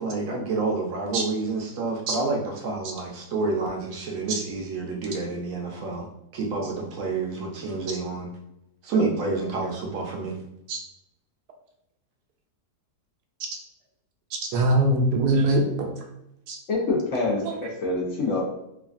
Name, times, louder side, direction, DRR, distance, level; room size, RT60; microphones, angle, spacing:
voice 1, 0.0-6.1 6.3-8.3 8.8-10.3, right 3 dB, 65° right, -1 dB, 0.9 m, -28 dB
voice 2, 14.3-15.9 16.5-16.6 17.4-17.5, right 1 dB, 85° right, 2 dB, 1.1 m, -22 dB
voice 3, 16.7-18.4, left 3 dB, 65° left, -3 dB, 0.8 m, -26 dB
3.1 x 2.3 x 2.4 m, 0.82 s
omnidirectional pair, 1.7 m